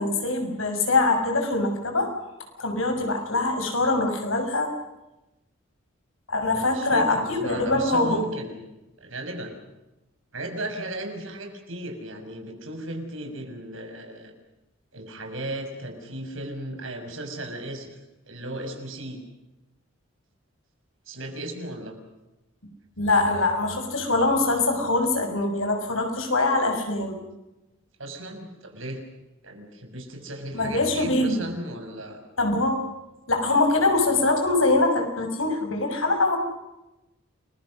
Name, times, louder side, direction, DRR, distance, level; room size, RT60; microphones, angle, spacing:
voice 1, 0.0-2.1 2.6-4.7 6.3-8.2 23.0-27.2 30.5-31.4 32.4-32.8 33.3-36.4, left 2 dB, 85° left, 5 dB, 6.4 m, -23 dB
voice 2, 6.5-8.7 9.0-9.5 10.3-14.3 14.9-18.0 18.3-19.2 21.1-22.0 28.0-29.0 29.4-32.2, right 1 dB, 80° right, 4 dB, 6.2 m, -35 dB
30.0 x 22.0 x 6.5 m, 0.97 s
head